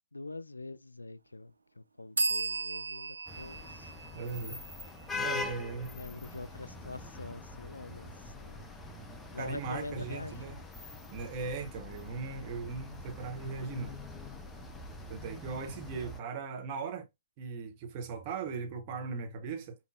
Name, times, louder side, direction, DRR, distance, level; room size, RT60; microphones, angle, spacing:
voice 1, 0.1-3.9 5.3-8.6 9.3-10.6, left 2 dB, 80° left, 0.4 m, -44 dB
sound 1, 2.2-5.7, right 3 dB, 75° right, 0.5 m, -36 dB
sound 2, 3.3-16.2, left 3 dB, 10° left, 0.6 m, -43 dB
voice 2, 4.1-4.6 5.1-5.9 9.3-10.6 11.1-14.0 15.1-17.1 17.4-19.8, right 5 dB, 35° right, 1.0 m, -38 dB
5.2 x 2.8 x 2.5 m
figure-of-eight pair, 120°, 0 cm